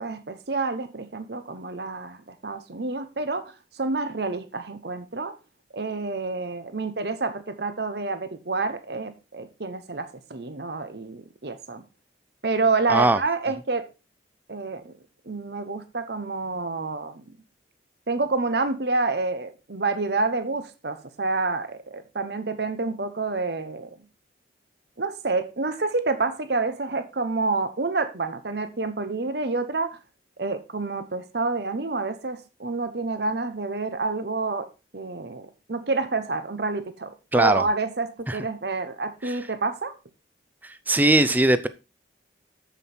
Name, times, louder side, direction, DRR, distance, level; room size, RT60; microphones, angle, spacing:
voice 1, 0.0-5.3 5.7-11.8 12.4-13.8 14.5-14.9 15.3-17.4 18.1-23.9 25.0-30.0 30.4-34.7 34.9-39.9, right 3 dB, 60° right, 1.0 m, -28 dB
voice 2, 37.3-37.6 39.2-39.3 40.9-41.7, right 1 dB, 10° right, 0.5 m, -19 dB
7.4 x 7.1 x 4.4 m
head